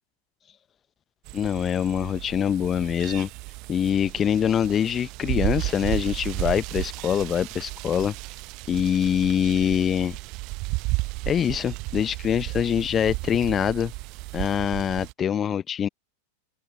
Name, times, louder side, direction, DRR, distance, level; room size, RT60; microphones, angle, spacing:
voice 1, 1.3-3.3 3.7-8.1 8.7-10.2 11.3-13.9 14.3-15.9, left 9 dB, 25° left, 1.1 m, -24 dB
sound 1, 1.3-15.1, right 25 dB, 40° right, 0.9 m, -33 dB
open air
figure-of-eight pair, 90°, 0 cm